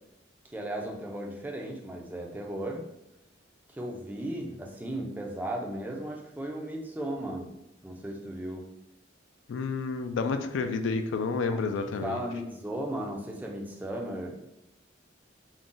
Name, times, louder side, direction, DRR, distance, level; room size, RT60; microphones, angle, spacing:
voice 1, 0.4-2.9 3.7-7.5 7.8-8.7 11.5-11.6 12.0-14.5, right 1 dB, 10° right, 0 dB, 0.4 m, -36 dB
voice 2, 9.5-12.2, left 4 dB, 70° left, 7 dB, 0.3 m, -30 dB
2.5 x 2.1 x 3.7 m, 0.88 s
head